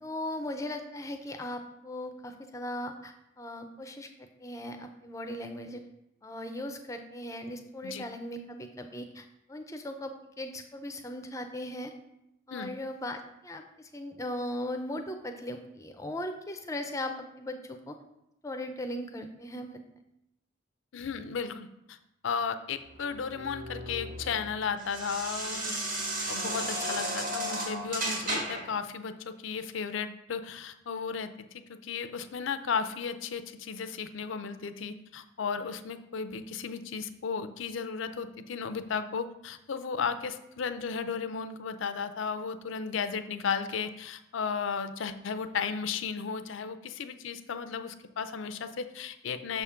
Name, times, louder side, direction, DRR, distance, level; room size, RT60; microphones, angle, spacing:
voice 1, 0.0-5.8 6.2-11.9 12.5-18.0 18.4-19.8, left 1 dB, 15° left, 6 dB, 0.5 m, -38 dB
voice 2, 20.9-22.0 22.2-25.7 26.3-49.6, left 6 dB, 70° left, 11 dB, 0.5 m, -34 dB
sound 1, 22.9-28.7, right 1 dB, 40° right, 1.6 m, -34 dB
6.7 x 3.6 x 5.6 m, 0.85 s
head